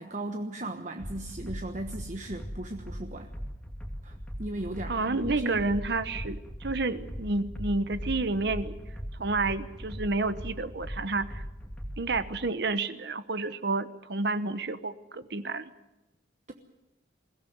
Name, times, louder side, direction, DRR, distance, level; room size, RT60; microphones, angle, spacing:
voice 1, 0.0-3.3 4.0-5.7, right 1 dB, 40° right, 6 dB, 1.2 m, -36 dB
sound 1, 1.0-12.2, equal, 5° left, 2.4 m, -39 dB
voice 2, 4.9-8.8 9.2-11.4 12.0-15.7, right 3 dB, 60° right, 12 dB, 1.1 m, -30 dB
22.0 x 16.5 x 9.5 m, 0.99 s
head